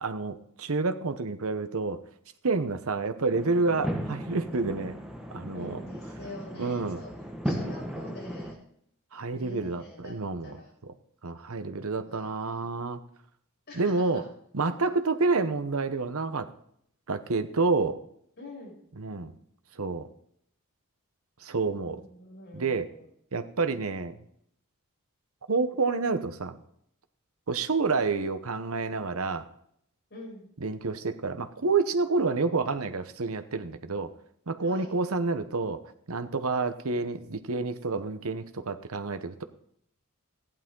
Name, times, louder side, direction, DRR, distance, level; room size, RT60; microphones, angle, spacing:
voice 1, 0.0-2.0 2.4-5.0 5.3-5.8 6.6-7.0 9.1-10.6 11.2-13.0 13.8-14.2 14.5-16.5 17.1-18.0 19.0-19.3 19.8-20.1 21.4-22.0 22.5-22.9 23.3-24.2 25.5-26.6 27.5-29.5 30.6-34.1 34.5-35.8 36.1-39.4, right 3 dB, 70° right, 9 dB, 1.0 m, -29 dB
sound 1, 3.3-8.5, equal, 5° right, 1.4 m, -36 dB
voice 2, 5.5-7.1 7.4-8.6 9.3-10.1 10.4-10.7 12.0-12.6 13.7-14.2 18.4-18.8 21.8-23.0 30.1-30.5 34.6-34.9, left 1 dB, 50° left, -3 dB, 6.8 m, -45 dB
15.0 x 11.0 x 3.8 m, 0.69 s
head